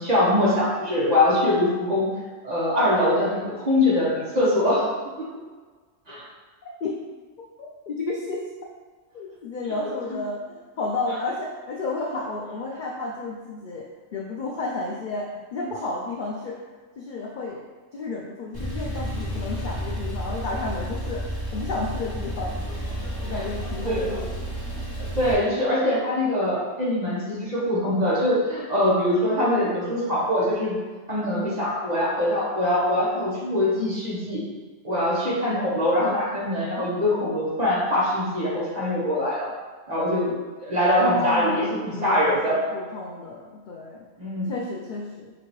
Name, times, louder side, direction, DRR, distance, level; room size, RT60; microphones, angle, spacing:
voice 1, 0.0-2.1 2.4-4.9 5.2-5.3 6.1-6.2 9.8-9.9 23.8-24.1 25.1-30.8 31.1-34.4 34.8-39.5 39.9-40.3 40.6-42.6 44.2-44.5, left 1 dB, 35° right, -7 dB, 1.2 m, -23 dB
voice 2, 7.6-8.5 9.1-13.9 14.1-16.6 17.0-17.6 17.9-21.2 21.5-22.6 22.9-24.6 35.5-35.8 41.0-44.0 44.5-45.3, left 3 dB, 65° left, -2 dB, 0.4 m, -32 dB
Male speech man speaking / Car / Idling, 18.5-25.3, equal, 20° left, 0.9 m, -31 dB
5.0 x 2.8 x 3.0 m, 1.4 s
omnidirectional pair, 1.3 m